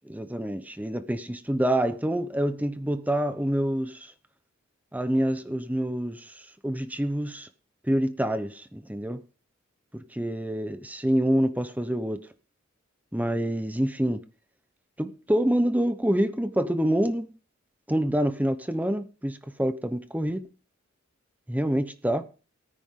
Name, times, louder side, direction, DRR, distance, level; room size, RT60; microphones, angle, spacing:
voice 1, 0.0-4.1 4.9-7.5 7.8-9.2 9.9-12.2 13.1-14.2 15.0-17.3 17.9-20.5 21.5-22.2, right 1 dB, 10° right, 0.9 m, -27 dB
19.0 x 9.9 x 3.8 m
head